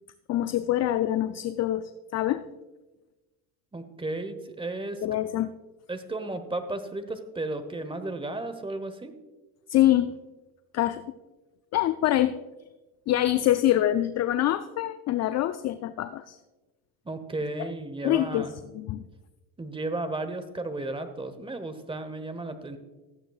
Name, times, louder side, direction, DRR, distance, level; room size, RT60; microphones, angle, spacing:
voice 1, 0.3-2.4 5.0-5.5 9.7-10.1 10.7-11.0 11.7-12.4 13.1-16.4 17.6-17.7 18.0-18.5 18.7-19.0, left 13 dB, 40° left, 12 dB, 0.4 m, -25 dB
voice 2, 3.7-5.0 5.9-9.1 17.0-18.5 19.6-22.8, right 2 dB, 10° right, 10 dB, 1.0 m, -34 dB
14.0 x 9.0 x 2.4 m, 1.1 s
supercardioid pair, 85°, 43 cm